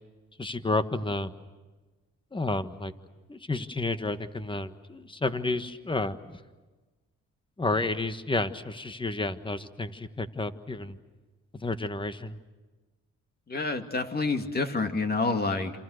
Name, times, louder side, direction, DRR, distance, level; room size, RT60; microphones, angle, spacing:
voice 1, 0.4-1.3 2.3-2.9 3.3-6.2 7.6-11.0 11.6-12.4, left 2 dB, 15° left, 10 dB, 1.5 m, -31 dB
voice 2, 13.5-15.7, left 3 dB, 30° left, 6 dB, 2.6 m, -28 dB
28.0 x 28.0 x 6.6 m, 1.3 s
cardioid pair, 90°, 30 cm